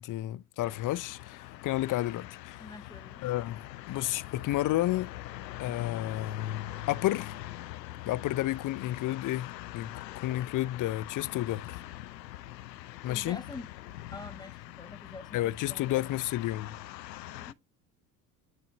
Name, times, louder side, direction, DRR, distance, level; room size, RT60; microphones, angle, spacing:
voice 1, 0.0-2.6 3.2-5.1 5.6-7.3 8.0-11.8 13.0-13.4 15.3-16.8, left 15 dB, 40° left, 0.6 m, -31 dB
sound 1, 0.6-17.5, left 14 dB, 85° left, 0.6 m, -43 dB
voice 2, 2.6-3.2 13.1-13.7 14.1-16.1 17.3-17.6, left 3 dB, 10° left, 1.4 m, -46 dB
11.0 x 4.1 x 2.9 m
hypercardioid pair, 65°, 49 cm